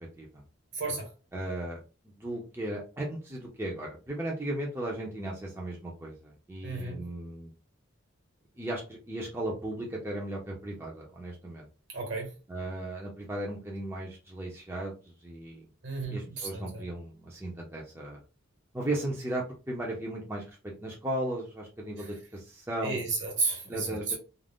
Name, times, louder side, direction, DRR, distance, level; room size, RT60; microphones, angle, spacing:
voice 1, 0.7-1.1 6.6-7.0 11.9-12.3 15.8-16.6 22.0-22.1 22.8-24.2, right 3 dB, 65° right, 1.2 m, -33 dB
voice 2, 1.3-1.8 2.2-7.5 8.6-11.7 12.5-14.9 15.2-15.7 16.1-18.2 18.7-20.4 20.8-23.0 23.7-24.2, right 1 dB, 10° right, 0.5 m, -36 dB
2.4 x 2.0 x 3.4 m
head